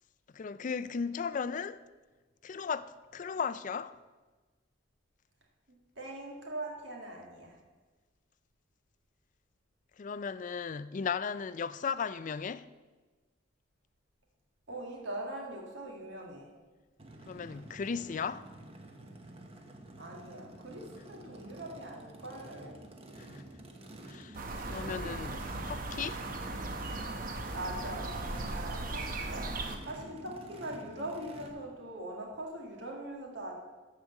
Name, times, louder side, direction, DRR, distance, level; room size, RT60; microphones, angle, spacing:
voice 1, 0.3-1.8 2.4-4.0 10.0-12.7 17.3-18.5 23.2-23.4 24.1-25.4 25.6-26.2, left 6 dB, 40° left, 0.4 m, -36 dB
voice 2, 6.0-7.6 14.7-16.5 20.0-22.8 24.9-25.2 27.2-33.5, right 1 dB, 70° right, 1.9 m, -42 dB
Race car auto racing / Idling / Accelerating revving vroom, 17.0-31.5, right 1 dB, 30° right, 1.0 m, -49 dB
sound 1, 24.3-29.8, right 2 dB, 45° right, 0.9 m, -38 dB
13.5 x 5.0 x 7.0 m
head